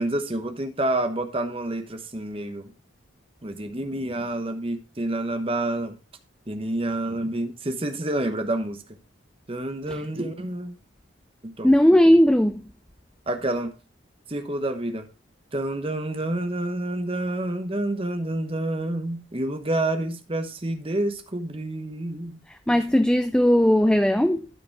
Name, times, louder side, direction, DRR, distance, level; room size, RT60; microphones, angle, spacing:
voice 1, 0.0-2.7 3.4-6.0 6.5-8.8 9.5-10.7 11.4-11.7 13.3-13.7 14.3-15.1 15.5-22.4, right 1 dB, 30° right, 1.0 m, -28 dB
voice 2, 11.6-12.7 22.5-24.5, equal, 5° left, 0.3 m, -18 dB
12.5 x 4.9 x 4.6 m
head